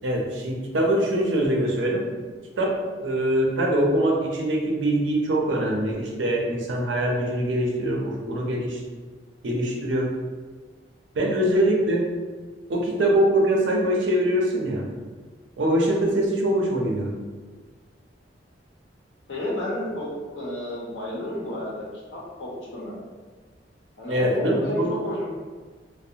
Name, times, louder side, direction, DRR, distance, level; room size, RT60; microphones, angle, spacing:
voice 1, 0.0-2.1 2.6-8.8 9.4-10.1 11.1-12.0 12.7-14.9 15.6-17.1 24.1-24.9, right 1 dB, 80° right, -1 dB, 0.5 m, -23 dB
voice 2, 11.2-11.5 19.3-21.8 22.1-23.0 24.0-25.3, left 1 dB, 90° left, -6 dB, 0.8 m, -31 dB
2.4 x 2.0 x 2.7 m, 1.4 s
head